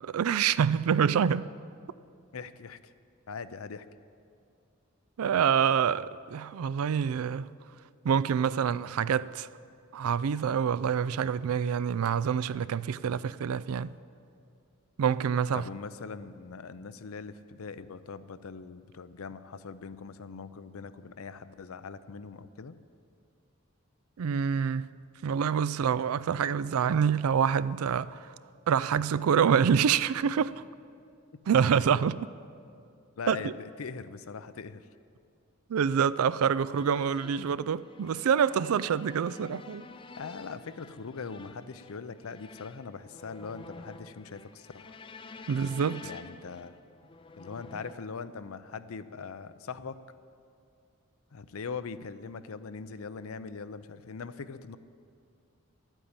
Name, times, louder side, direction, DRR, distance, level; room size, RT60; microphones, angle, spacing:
voice 1, 0.0-1.5 5.2-7.5 8.0-9.5 9.9-13.9 15.0-15.6 24.2-24.9 25.2-28.3 28.7-30.6 31.5-32.1 33.3-33.4 35.7-39.8 45.5-46.1, right 7 dB, 80° right, 0.4 m, -26 dB
voice 2, 2.3-2.9 3.3-3.9 15.5-22.7 31.7-32.0 33.2-34.9 40.2-44.9 46.0-46.7 47.4-50.0 51.3-54.8, left 5 dB, 75° left, 0.5 m, -41 dB
sound 1, 36.7-47.9, left 4 dB, 25° left, 0.4 m, -49 dB
12.0 x 9.1 x 8.6 m
head